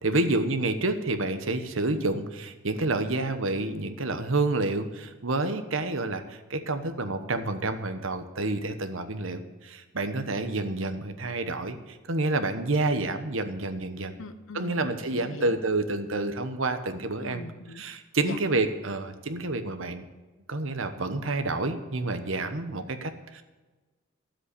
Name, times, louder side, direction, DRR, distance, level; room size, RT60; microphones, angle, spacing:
voice 1, 0.0-14.1 14.5-17.4 17.7-20.0 20.5-23.4, right 2 dB, 70° right, 9 dB, 1.1 m, -29 dB
voice 2, 14.2-15.6 17.2-17.8 18.2-18.4, left 2 dB, 70° left, 10 dB, 1.0 m, -40 dB
13.0 x 7.8 x 8.3 m, 1.2 s
head